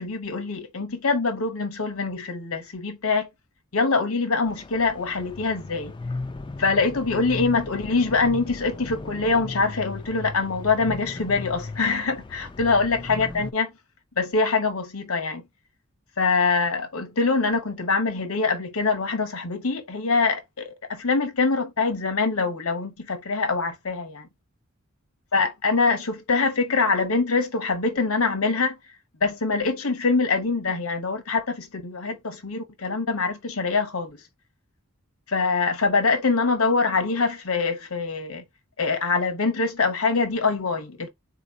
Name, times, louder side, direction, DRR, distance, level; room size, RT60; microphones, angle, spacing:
voice 1, 0.0-3.3 3.7-5.9 6.6-13.7 14.2-15.4 16.2-24.3 25.3-28.8 29.2-34.2 35.3-38.4 38.8-41.1, left 4 dB, 80° left, 1.0 m, -24 dB
sound 1, 4.5-13.5, left 3 dB, 20° left, 0.4 m, -36 dB
4.1 x 2.9 x 3.9 m
head